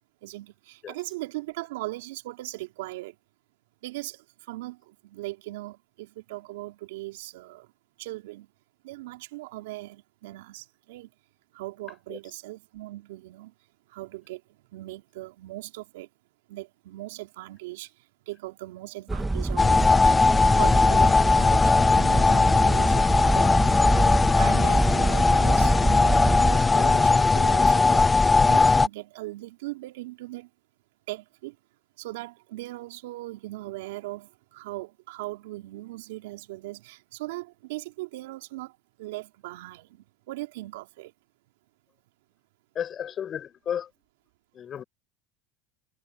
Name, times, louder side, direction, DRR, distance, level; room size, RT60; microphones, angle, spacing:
voice 1, 0.2-3.1 3.8-7.7 8.0-8.5 8.8-11.1 11.5-13.5 13.9-14.4 14.7-16.1 16.5-17.9 18.3-20.3 20.6-23.5 23.8-28.1 28.4-30.5 31.1-31.5 32.0-41.1, right 19 dB, 75° right, 3.2 m, -39 dB
sound 1, 19.1-26.6, right 2 dB, 10° right, 2.0 m, -26 dB
sound 2, 19.6-28.9, left 3 dB, 15° left, 0.4 m, -19 dB
voice 2, 42.8-43.9 44.5-44.8, left 9 dB, 40° left, 5.4 m, -33 dB
hypercardioid pair, 90°, 0 cm